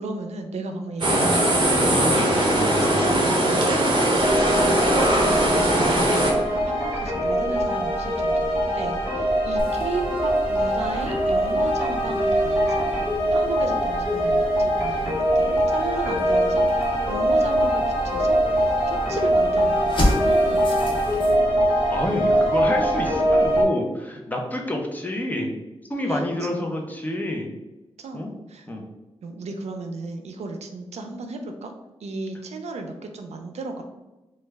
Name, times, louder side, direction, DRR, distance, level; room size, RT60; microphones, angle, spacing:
voice 1, 0.0-2.5 3.0-6.0 6.5-12.9 13.3-21.3 26.1-26.2 26.5-26.7 28.0-28.2 28.5-28.7 29.2-31.7 32.0-33.8, right 3 dB, 90° right, 5 dB, 0.4 m, -34 dB
sound 1, 1.0-6.3, right 1 dB, 50° right, 0.7 m, -20 dB
sound 2, 4.2-23.6, equal, 10° right, 1.1 m, -22 dB
sound 3, 9.6-21.4, left 1 dB, 45° left, 1.0 m, -33 dB
voice 2, 21.9-25.5 25.9-27.5 28.1-28.3 28.7-28.8, left 1 dB, 15° left, 1 dB, 0.5 m, -28 dB
3.1 x 2.3 x 3.3 m, 1.1 s
wide cardioid pair, 120°, 11 cm